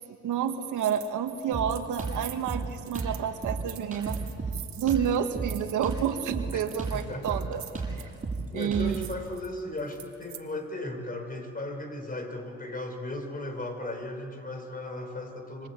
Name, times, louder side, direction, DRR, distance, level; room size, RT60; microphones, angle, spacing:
voice 1, 0.2-4.2 4.8-7.6 8.5-9.1, right 8 dB, 85° right, 6 dB, 1.9 m, -29 dB
sound 1, 0.8-1.1 1.4-10.4, right 10 dB, 65° right, 2.0 m, -46 dB
Drum kit, 1.5-9.2, right 3 dB, 25° right, 7.2 m, -34 dB
voice 2, 6.9-7.5 8.5-15.7, left 1 dB, 30° left, 5 dB, 5.0 m, -36 dB
26.5 x 26.0 x 8.4 m, 2.5 s
cardioid pair, 90°, 30 cm